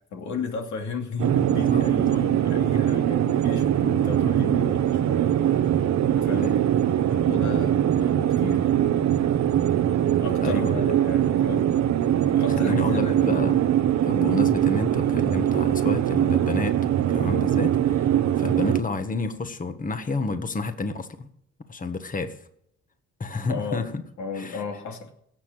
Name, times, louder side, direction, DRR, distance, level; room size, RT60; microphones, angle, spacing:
voice 1, 0.1-5.3 6.2-6.5 7.1-9.2 10.2-11.7 12.3-13.5 23.5-23.9 24.2-25.1, left 4 dB, 70° left, 3 dB, 2.7 m, -34 dB
sound 1, 1.2-18.8, right 11 dB, 65° right, 1.0 m, -22 dB
voice 2, 10.4-10.8 12.6-13.6 14.0-21.3 21.7-22.3 23.2-24.0 24.3-24.6, left 3 dB, 25° left, 8 dB, 1.6 m, -30 dB
17.5 x 7.0 x 7.8 m, 0.72 s
cardioid pair, 90°, 30 cm